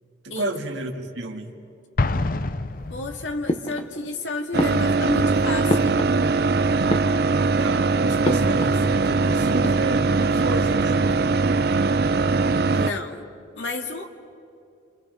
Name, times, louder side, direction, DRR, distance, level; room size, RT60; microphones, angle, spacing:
voice 1, 0.2-1.6 7.6-11.4, right 2 dB, 85° right, 3 dB, 2.0 m, -31 dB
Explosion, 2.0-3.6, left 2 dB, 50° left, 0.7 m, -26 dB
voice 2, 2.9-5.9 12.7-13.3 13.6-14.1, left 3 dB, 90° left, 3 dB, 2.2 m, -31 dB
sound 1, 3.5-4.2 4.6-6.5 6.8-7.6 8.2-8.9 9.1-9.2 9.5-10.2, left 1 dB, 35° left, 1.1 m, -29 dB
sound 2, 4.5-12.9, right 4 dB, 55° right, 0.6 m, -21 dB
29.0 x 28.0 x 5.2 m, 2.5 s
head